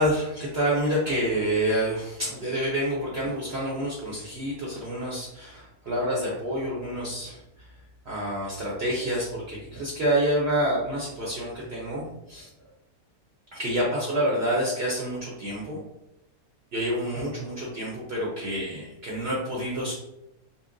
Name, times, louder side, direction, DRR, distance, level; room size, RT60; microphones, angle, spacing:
voice 1, 0.0-7.4 8.1-12.5 13.5-15.8 16.7-19.9, equal, 50° right, -4 dB, 0.8 m, -28 dB
5.6 x 2.1 x 2.6 m, 0.88 s
omnidirectional pair, 1.6 m